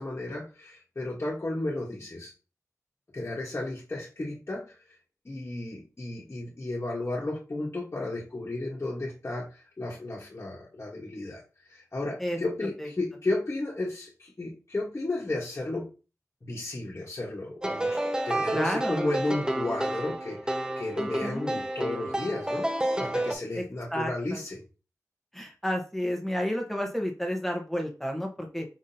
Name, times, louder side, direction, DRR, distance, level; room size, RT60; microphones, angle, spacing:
voice 1, 0.0-2.3 3.1-4.7 5.2-11.4 11.7-15.9 16.4-18.0 18.2-22.7 23.0-24.6, left 2 dB, 40° left, -6 dB, 1.3 m, -33 dB
sound 1, 17.6-23.3, right 1 dB, 10° right, 0.7 m, -30 dB
voice 2, 18.5-19.0 21.0-21.6 23.5-23.6 23.9-24.4 25.3-28.7, equal, 5° left, 2 dB, 1.2 m, -31 dB
5.1 x 3.6 x 2.8 m, 0.33 s
wide cardioid pair, 60°, 6 cm